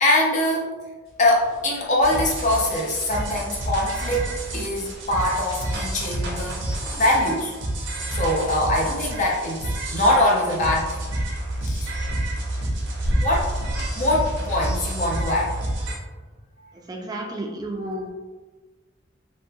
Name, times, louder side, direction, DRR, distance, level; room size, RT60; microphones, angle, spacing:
voice 1, 0.0-0.7 1.2-6.6 7.0-7.5 8.1-11.0 11.6-12.0 13.2-13.5 14.0-15.5, left 1 dB, 40° left, -2 dB, 0.5 m, -23 dB
sound 1, 1.1-14.7, equal, 65° left, 1.0 m, -36 dB
sound 2, 2.0-15.9, right 1 dB, 65° right, 0.6 m, -29 dB
voice 2, 16.9-18.1, right 1 dB, 20° right, 1 dB, 0.3 m, -31 dB
2.9 x 2.8 x 2.2 m, 1.3 s
head